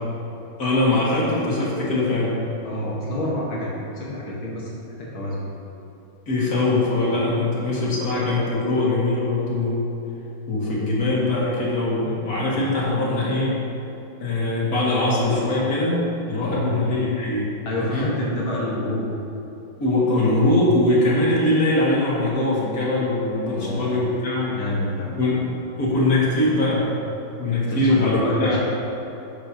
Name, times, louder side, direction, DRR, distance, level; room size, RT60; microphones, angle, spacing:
voice 1, 0.6-2.3 6.3-9.9 10.5-13.6 14.2-17.5 17.8-18.1 19.8-24.6 25.0-25.4 25.8-26.8 27.4-28.6, left 2 dB, 45° left, -7 dB, 2.7 m, -22 dB
voice 2, 2.6-5.4 16.4-16.8 17.7-19.1 23.4-24.0 24.5-25.1 27.5-28.6, left 1 dB, 85° left, -5 dB, 2.5 m, -28 dB
12.5 x 10.0 x 3.0 m, 2.9 s
omnidirectional pair, 2.2 m